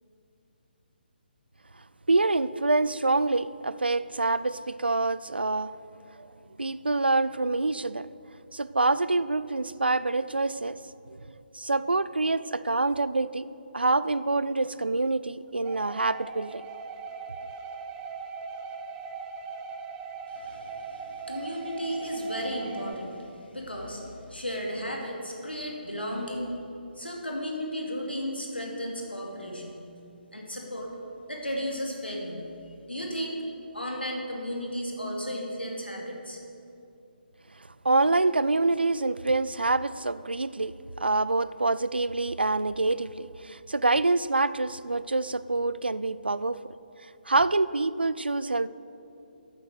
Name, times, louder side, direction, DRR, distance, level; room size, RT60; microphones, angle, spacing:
voice 1, 2.1-5.7 6.2-6.3 6.6-8.1 8.5-10.8 11.1-11.2 11.5-13.5 13.7-16.6 37.8-40.7 41.0-46.6 47.3-48.7, right 3 dB, 80° right, 17 dB, 0.4 m, -26 dB
sound 1, 15.6-22.9, right 5 dB, 15° right, 0.5 m, -39 dB
voice 2, 20.3-26.5 27.0-29.8 30.3-30.9 31.3-32.4 32.9-33.4 33.7-36.4, equal, 85° left, -1 dB, 2.3 m, -34 dB
9.2 x 7.9 x 6.4 m, 2.8 s
figure-of-eight pair, 140°, 5 cm